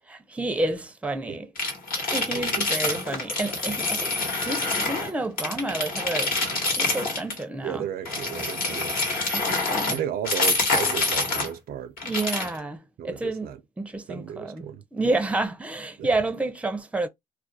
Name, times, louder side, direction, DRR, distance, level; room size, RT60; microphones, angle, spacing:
voice 1, 0.1-1.5 2.1-4.2 4.4-6.3 6.7-7.9 8.7-8.8 9.3-10.0 12.0-13.5 13.8-14.7 14.9-17.1, right 2 dB, 10° right, 0.4 m, -29 dB
sound 1, 1.6-5.1 5.4-7.4 8.0-11.5 12.0-12.6, left 3 dB, 65° left, 1.1 m, -26 dB
voice 2, 2.3-2.9 7.6-9.2 9.9-11.9 13.0-13.6 14.1-14.8 16.0-16.1, right 9 dB, 70° right, 0.4 m, -34 dB
2.3 x 2.1 x 2.6 m
supercardioid pair, 65°, 16 cm